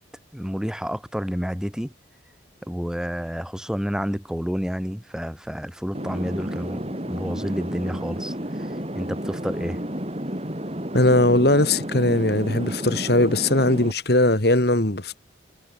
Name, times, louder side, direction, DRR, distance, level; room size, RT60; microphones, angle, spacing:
voice 1, 0.3-1.9 2.7-9.8, equal, 5° right, 1.5 m, -30 dB
sound 1, 5.9-13.9, equal, 30° right, 3.8 m, -31 dB
voice 2, 10.9-15.2, left 1 dB, 55° left, 2.7 m, -19 dB
head